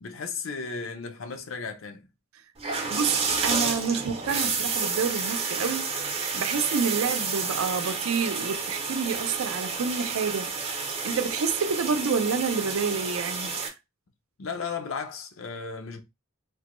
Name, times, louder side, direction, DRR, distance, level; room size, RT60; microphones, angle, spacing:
voice 1, 0.0-2.1 14.4-16.0, left 5 dB, 70° left, 0.6 m, -35 dB
sound 1, 2.6-13.7, right 4 dB, 30° right, 0.5 m, -30 dB
voice 2, 2.9-13.7, right 5 dB, 85° right, 0.5 m, -29 dB
3.3 x 2.1 x 3.0 m
head